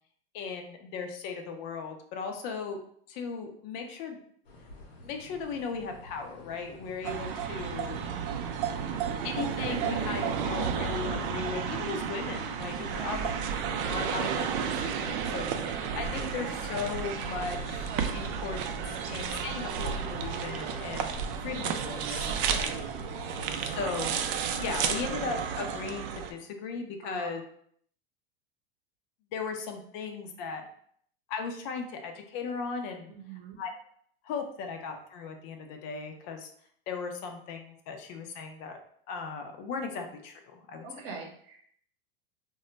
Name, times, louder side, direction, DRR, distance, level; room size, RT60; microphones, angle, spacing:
voice 1, 0.3-2.8 3.1-4.2 5.0-8.0 9.2-13.3 13.8-17.9 18.1-22.3 23.6-24.2 24.5-27.4 29.3-30.6 31.3-33.1 33.6-33.7 34.2-36.5 36.9-38.8 39.1-40.8, left 5 dB, 50° left, 4 dB, 0.5 m, -37 dB
sound 1, 4.4-24.3, left 2 dB, 85° left, 0.8 m, -47 dB
sound 2, 7.0-26.3, right 7 dB, 60° right, 0.4 m, -32 dB
voice 2, 12.9-13.2 22.3-22.8 27.0-27.3 33.1-33.6 40.8-41.7, right 4 dB, 45° right, 1 dB, 0.8 m, -43 dB
2.2 x 2.1 x 3.8 m, 0.64 s
hypercardioid pair, 110°, 30 cm